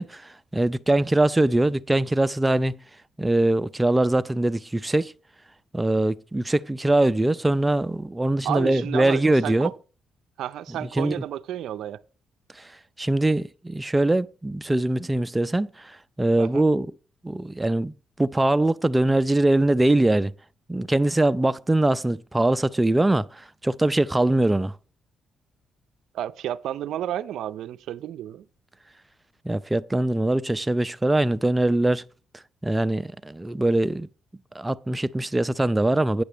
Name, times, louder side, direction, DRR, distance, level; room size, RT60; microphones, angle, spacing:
voice 1, 0.0-2.8 3.2-5.1 5.7-9.7 10.8-11.1 12.6-12.7 13.0-16.9 17.2-20.3 20.7-24.7 29.4-32.0 32.6-34.1 34.5-36.2, right 2 dB, 15° right, 0.4 m, -22 dB
voice 2, 8.4-9.7 10.4-12.0 16.4-16.6 26.1-28.5, right 11 dB, 80° right, 0.4 m, -31 dB
9.1 x 6.9 x 5.0 m
cardioid pair, 90°, 0 cm